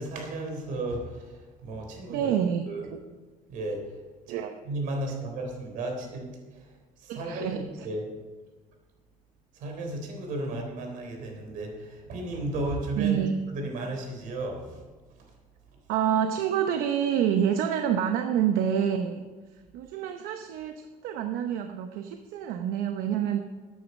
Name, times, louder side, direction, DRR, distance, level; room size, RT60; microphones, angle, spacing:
voice 1, 0.0-2.3 2.7-2.9 3.5-4.0 4.3-4.4 4.6-6.3 6.5-8.0 9.5-13.2 13.5-14.8, right 2 dB, 65° right, 3 dB, 3.7 m, -34 dB
voice 2, 2.1-2.6 4.3-4.5 7.1-7.9 13.0-13.3 15.9-19.3 19.7-23.4, right 9 dB, 85° right, 6 dB, 0.8 m, -27 dB
14.5 x 9.3 x 5.4 m, 1.3 s
cardioid pair, 150°, 15 cm